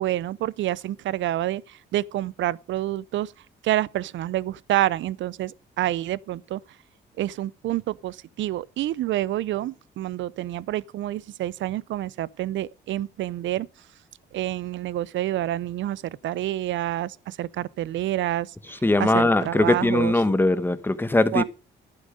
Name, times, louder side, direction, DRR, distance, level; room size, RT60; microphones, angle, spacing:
voice 1, 0.0-3.3 3.6-6.6 7.2-13.7 14.3-20.1 21.3-21.4, right 14 dB, 70° right, 0.6 m, -28 dB
voice 2, 18.7-21.4, left 2 dB, 10° left, 1.2 m, -21 dB
12.0 x 9.1 x 5.0 m
cardioid pair, 90°, 20 cm